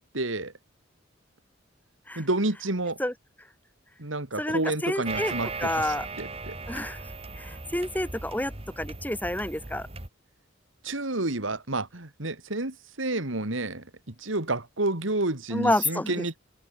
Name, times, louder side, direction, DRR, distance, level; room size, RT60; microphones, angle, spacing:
voice 1, 0.1-0.5 2.2-3.0 4.0-6.6 10.8-16.4, right 2 dB, 85° right, 2.9 m, -30 dB
voice 2, 4.4-5.3 5.6-6.0 6.7-7.0 7.4-9.9 15.5-16.4, left 1 dB, 10° left, 5.1 m, -29 dB
sound 1, 5.1-10.1, right 3 dB, 30° right, 2.7 m, -38 dB
head